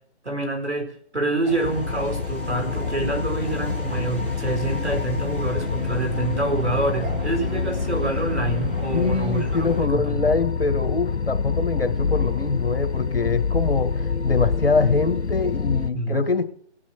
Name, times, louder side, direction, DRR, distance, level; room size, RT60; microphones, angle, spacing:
voice 1, 0.2-10.3 15.9-16.2, right 2 dB, 75° right, 3 dB, 4.3 m, -27 dB
sound 1, 1.4-9.8, left 1 dB, 10° left, 0.6 m, -36 dB
sound 2, 1.6-15.9, left 5 dB, 70° left, 0.8 m, -26 dB
voice 2, 8.9-16.4, left 4 dB, 55° left, 8 dB, 1.7 m, -24 dB
18.5 x 6.1 x 6.1 m, 0.62 s
figure-of-eight pair, 145°, 34 cm